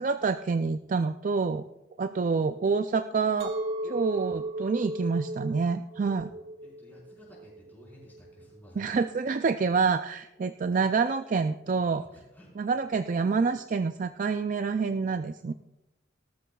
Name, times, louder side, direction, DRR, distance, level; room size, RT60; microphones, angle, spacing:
voice 1, 0.0-1.6 2.0-3.5 3.9-6.3 8.8-12.0 12.6-15.5, right 4 dB, 40° right, 9 dB, 0.3 m, -27 dB
Chink clink, 3.4-8.6, right 1 dB, 80° right, 1.9 m, -36 dB
voice 2, 5.9-9.0 11.6-12.7, equal, 10° left, -5 dB, 4.5 m, -53 dB
18.0 x 13.5 x 2.3 m, 0.96 s
head